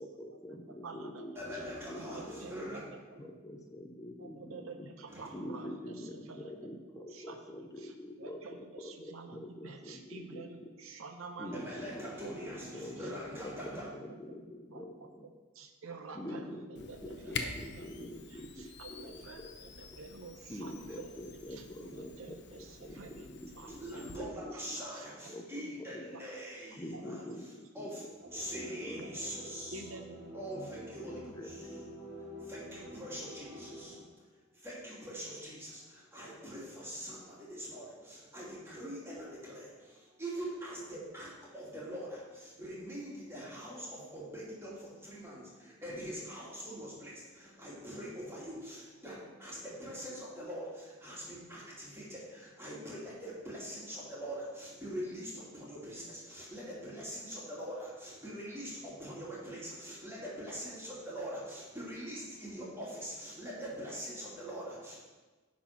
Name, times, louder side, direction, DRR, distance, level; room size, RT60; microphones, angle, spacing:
voice 1, 0.0-4.9 5.3-10.7 11.4-15.3 16.1-19.5 19.9-20.0 20.5-24.8 25.3-26.2 26.8-28.0 28.3-29.0 29.4-29.5 31.0-31.9 37.1-37.3, left 1 dB, 15° left, 3 dB, 0.6 m, -46 dB
voice 2, 0.8-1.2 1.5-2.8 3.1-3.3 4.2-5.9 6.3-6.5 7.0-7.4 7.8-7.9 8.2-12.3 12.7-13.4 14.7-14.9 15.5-21.1 21.5-23.3 23.5-25.3 25.6-25.8 26.1-26.2 26.9-27.3 28.2-29.3 29.7-30.8, right 4 dB, 85° right, 5 dB, 0.8 m, -49 dB
voice 3, 1.4-2.8 5.1-5.3 11.5-13.9 23.8-27.2 27.7-34.2 34.5-65.0, equal, 10° right, -7 dB, 2.6 m, -43 dB
Camera, 16.8-24.2, left 5 dB, 55° left, 0.7 m, -46 dB
10.5 x 4.3 x 5.8 m, 1.3 s
head